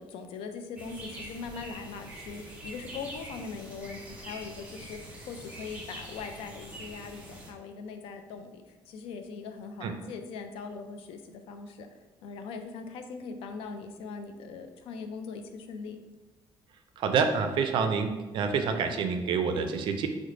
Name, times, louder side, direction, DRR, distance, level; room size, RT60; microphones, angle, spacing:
voice 1, 0.0-5.0 5.3-11.9 12.2-16.0, left 5 dB, 75° left, 6 dB, 0.4 m, -41 dB
sound 1, 0.8-7.5, right 1 dB, 15° right, 0.6 m, -44 dB
voice 2, 17.0-20.1, right 5 dB, 60° right, 7 dB, 0.4 m, -27 dB
3.7 x 2.1 x 3.1 m, 1.2 s
cardioid pair, 140°, 10 cm